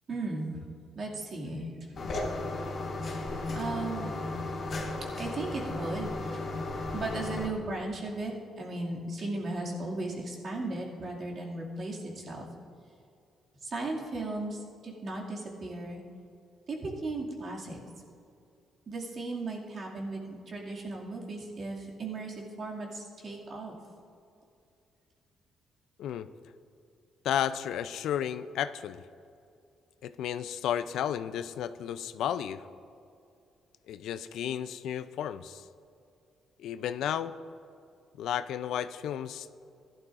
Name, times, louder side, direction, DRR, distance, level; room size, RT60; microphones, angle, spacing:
voice 1, 0.1-0.7 0.9-2.1 2.9-3.0 3.4-4.4 4.7-6.4 6.9-12.5 13.6-16.0 16.7-17.8 18.9-23.7, right 2 dB, 50° right, -2 dB, 2.2 m, -36 dB
sound 1, 2.0-7.5, left 2 dB, 55° left, 2.1 m, -35 dB
voice 2, 27.2-29.0 30.0-32.6 33.9-35.6 36.6-37.3 38.2-39.5, left 10 dB, 80° left, 13 dB, 0.4 m, -33 dB
16.0 x 11.5 x 2.5 m, 2.5 s
cardioid pair, 90°, 0 cm